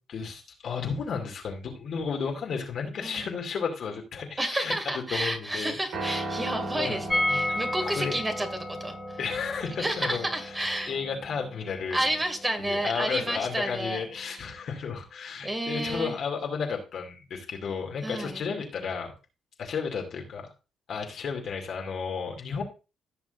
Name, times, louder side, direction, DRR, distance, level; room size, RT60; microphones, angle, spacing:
voice 1, 0.1-4.7 5.1-5.7 6.3-6.4 6.7-7.0 7.3-8.2 9.2-10.3 10.9-12.0 12.6-19.1 19.6-20.5 20.9-22.6, left 5 dB, 65° left, 2 dB, 2.6 m, -33 dB
voice 2, 3.0-3.3 4.4-9.2 9.8-10.9 11.9-14.1 15.4-16.2 18.0-18.4, right 1 dB, 20° right, 5 dB, 2.5 m, -30 dB
Piano, 5.9-14.2, right 2 dB, 70° right, 3.8 m, -39 dB
sound 1, 7.1-12.9 13.1-13.2 13.5-13.6, left 1 dB, 10° left, 2.5 m, -33 dB
16.0 x 6.2 x 2.6 m, 0.30 s
supercardioid pair, 55°, 0 cm